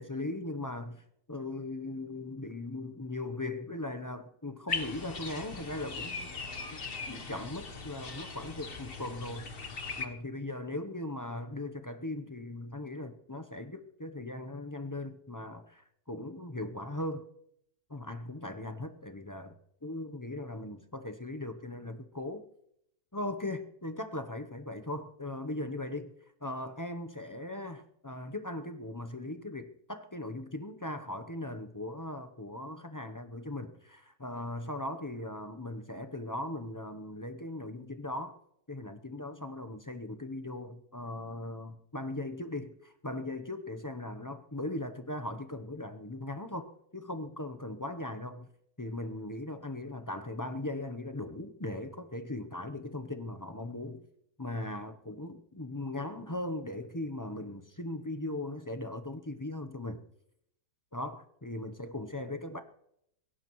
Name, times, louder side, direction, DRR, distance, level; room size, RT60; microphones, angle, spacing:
voice 1, 0.0-6.3 6.7-6.8 7.0-9.5 10.0-17.2 17.9-22.4 23.1-26.1 26.4-38.4 38.7-48.5 48.8-54.0 54.4-60.0 60.9-62.6, left 2 dB, 20° left, 8 dB, 0.5 m, -39 dB
sound 1, 4.7-10.1, left 4 dB, 40° left, 1.3 m, -39 dB
22.0 x 17.5 x 3.1 m, 0.77 s
omnidirectional pair, 1.6 m